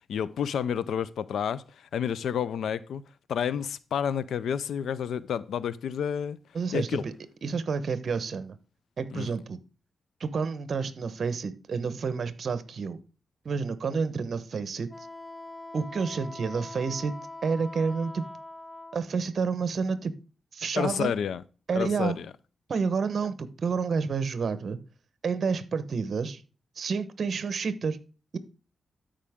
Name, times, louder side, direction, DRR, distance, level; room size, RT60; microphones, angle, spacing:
voice 1, 0.1-3.0 3.3-6.4 6.7-7.0 9.1-9.3 20.8-21.4 21.7-22.3, left 8 dB, 85° left, 0.5 m, -30 dB
voice 2, 6.5-7.1 7.4-8.6 9.0-9.6 10.2-13.0 13.4-14.9 15.7-17.1 17.4-18.2 18.9-20.1 20.5-21.1 21.7-22.2 22.7-24.8 25.2-26.4 26.8-28.0, right 5 dB, 60° right, 1.0 m, -29 dB
Wind instrument woodwind instrument, 14.9-19.0, left 2 dB, 25° left, 0.7 m, -43 dB
13.0 x 5.1 x 3.6 m
cardioid pair, 90°, 0 cm